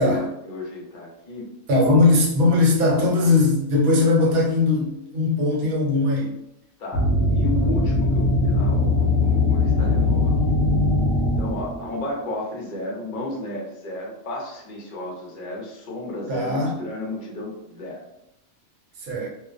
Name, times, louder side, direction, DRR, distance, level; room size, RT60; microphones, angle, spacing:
voice 1, 0.0-1.5 6.8-10.3 11.4-18.0, left 1 dB, 50° left, -2 dB, 0.6 m, -33 dB
voice 2, 1.7-6.4 16.3-16.8 19.0-19.3, left 2 dB, 60° right, -3 dB, 1.0 m, -19 dB
sound 1, 6.9-12.0, left 2 dB, 75° left, 0.9 m, -20 dB
2.5 x 2.0 x 2.4 m, 0.85 s
omnidirectional pair, 1.5 m